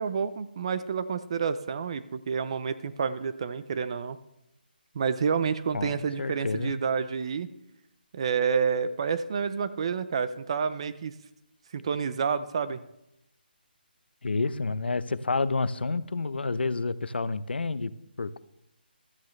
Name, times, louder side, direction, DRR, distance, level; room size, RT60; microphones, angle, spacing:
voice 1, 0.0-4.2 4.9-7.5 8.1-11.1 11.7-12.8, right 6 dB, 35° right, 13 dB, 0.6 m, -29 dB
voice 2, 5.7-6.8 14.2-17.9 18.2-18.4, left 3 dB, 85° left, 15 dB, 0.7 m, -29 dB
16.0 x 13.0 x 3.2 m, 0.83 s
hypercardioid pair, 170°, 6 cm